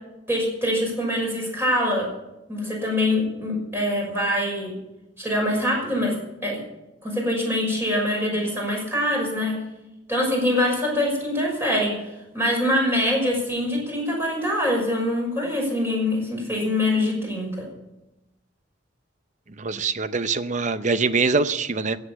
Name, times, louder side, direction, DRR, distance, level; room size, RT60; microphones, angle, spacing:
voice 1, 0.3-2.1 2.5-4.7 5.2-6.1 6.4-6.6 7.0-9.6 10.1-11.9 12.3-17.7, left 1 dB, 15° right, -1 dB, 6.1 m, -24 dB
voice 2, 19.6-22.0, right 4 dB, 40° right, 12 dB, 0.7 m, -23 dB
15.5 x 8.3 x 8.6 m, 0.95 s
head